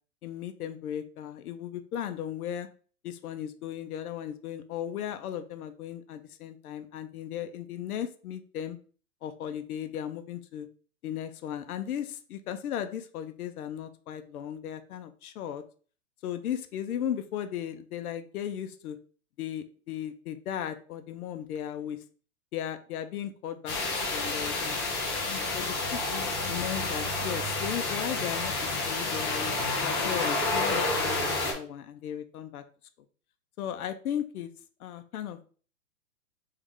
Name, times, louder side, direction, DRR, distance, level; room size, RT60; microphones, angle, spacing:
voice 1, 0.2-2.7 3.0-8.8 9.2-10.7 11.0-15.6 16.2-19.0 19.4-22.0 22.5-26.0 26.5-29.5 29.8-32.6 33.6-34.5 34.8-35.5, left 10 dB, 90° left, 8 dB, 0.7 m, -36 dB
sound 1, 23.7-31.5, left 3 dB, 20° left, 0.7 m, -29 dB
3.5 x 3.2 x 3.5 m, 0.41 s
supercardioid pair, 170°, 43 cm